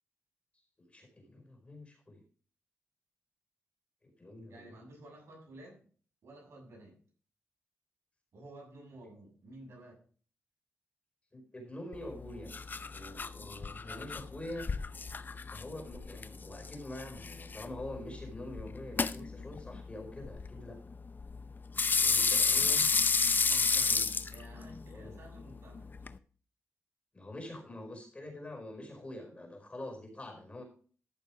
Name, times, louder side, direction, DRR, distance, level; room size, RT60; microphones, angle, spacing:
voice 1, 0.8-2.2 4.0-4.8 11.3-12.5 12.9-14.7 15.5-20.8 21.9-22.9 23.9-24.1 24.9-25.2 27.1-30.6, left 1 dB, 25° left, 4 dB, 5.0 m, -45 dB
voice 2, 4.5-5.9 6.2-7.0 8.3-10.0 13.8-14.1 22.6-23.0 23.5-23.9 24.3-25.9, right 1 dB, 70° right, -2 dB, 7.2 m, -52 dB
sound 1, 11.9-26.2, left 4 dB, 40° left, 0.7 m, -33 dB
13.5 x 6.5 x 5.0 m, 0.42 s
cardioid pair, 70°, 5 cm